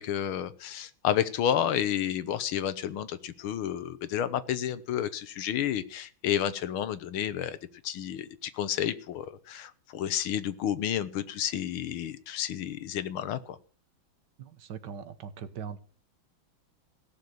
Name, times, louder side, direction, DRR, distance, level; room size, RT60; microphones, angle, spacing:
voice 1, 0.0-7.6 7.8-13.6, left 10 dB, 90° left, 1.8 m, -31 dB
voice 2, 14.4-15.8, right 7 dB, 60° right, 1.6 m, -40 dB
16.5 x 7.0 x 7.7 m
omnidirectional pair, 2.2 m